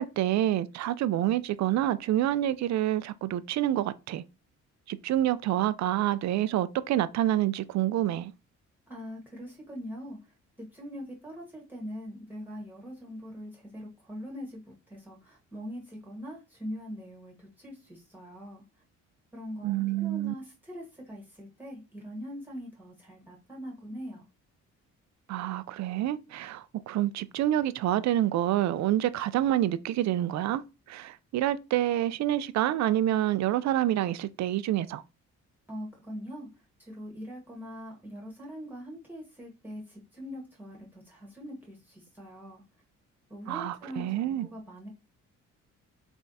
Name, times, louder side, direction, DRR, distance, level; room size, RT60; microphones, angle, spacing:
voice 1, 0.0-4.2 4.9-8.3 19.6-20.3 25.3-30.6 30.9-35.0 43.5-44.5, right 13 dB, 65° right, 0.5 m, -27 dB
voice 2, 8.9-10.2 10.7-18.6 19.3-24.2 35.7-36.5 36.8-42.6 43.3-44.9, equal, 5° right, 1.5 m, -42 dB
3.6 x 3.3 x 4.1 m
cardioid pair, 90°, 30 cm